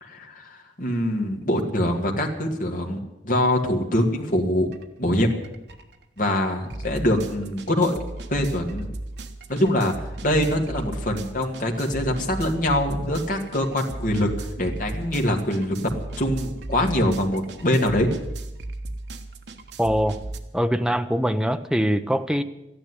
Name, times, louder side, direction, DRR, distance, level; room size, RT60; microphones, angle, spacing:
voice 1, 0.0-3.0 3.2-4.7 5.0-5.3 6.2-8.0 8.3-8.8 9.5-14.3 14.6-15.8 16.2-18.1, left 1 dB, 50° left, 2 dB, 2.0 m, -24 dB
sound 1, 4.7-4.9 5.2-20.4, right 2 dB, 70° right, 1.3 m, -36 dB
voice 2, 19.8-20.2 20.5-22.4, equal, 5° right, 8 dB, 0.7 m, -23 dB
13.5 x 10.5 x 9.8 m, 0.92 s
head